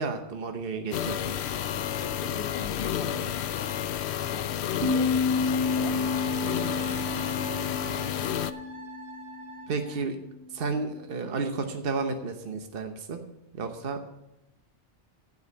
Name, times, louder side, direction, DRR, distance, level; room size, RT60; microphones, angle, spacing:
voice 1, 0.0-1.4 9.7-10.2 10.5-13.2 13.6-14.0, right 4 dB, 60° right, 5 dB, 1.2 m, -32 dB
sound 1, 0.9-8.5, left 10 dB, 80° left, 0.8 m, -31 dB
voice 2, 1.9-3.6 4.2-6.8, left 3 dB, 55° left, 4 dB, 1.9 m, -41 dB
sound 2, 4.8-10.0, left 3 dB, 85° right, 1.5 m, -30 dB
Wind instrument woodwind instrument, 5.6-10.1, right 5 dB, 15° left, 4.1 m, -44 dB
15.0 x 5.4 x 6.6 m, 0.91 s
omnidirectional pair, 1.1 m